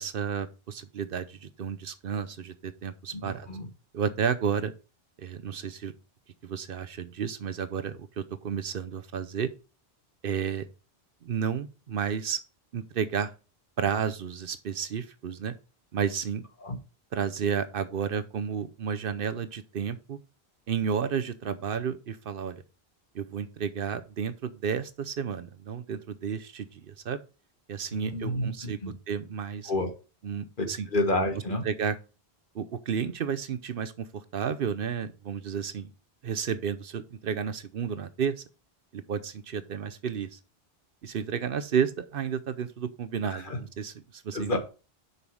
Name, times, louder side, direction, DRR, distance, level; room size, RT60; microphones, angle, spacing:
voice 1, 0.0-3.5 3.9-4.7 5.2-5.9 6.4-9.5 10.2-10.7 11.2-12.4 12.7-13.3 13.8-15.5 15.9-16.4 17.1-20.2 20.7-22.6 23.1-27.2 27.7-29.7 30.2-30.9 31.5-32.0 32.5-35.9 36.2-38.4 38.9-40.4 41.0-44.5, right 7 dB, 65° right, 0.8 m, -32 dB
voice 2, 3.1-3.7 16.6-16.8 27.9-28.9 29.7-29.9 30.6-31.6 43.3-43.6 44.3-44.6, left 1 dB, 55° left, 1.6 m, -30 dB
7.0 x 5.6 x 4.7 m
omnidirectional pair, 1.0 m